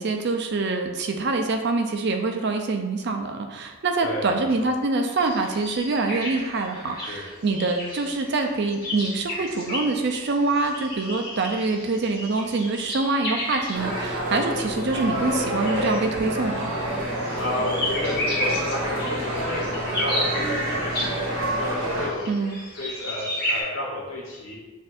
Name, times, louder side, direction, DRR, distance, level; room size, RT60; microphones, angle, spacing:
voice 1, 0.0-16.7 22.3-22.6, right 3 dB, 50° right, 4 dB, 0.4 m, -25 dB
sound 1, 5.2-23.6, left 1 dB, 45° left, 1.3 m, -33 dB
sound 2, 13.7-22.1, right 1 dB, 70° right, 0.9 m, -28 dB
voice 2, 17.4-22.3 22.8-24.6, left 1 dB, 70° left, -4 dB, 1.2 m, -32 dB
6.5 x 2.7 x 2.5 m, 1.2 s
head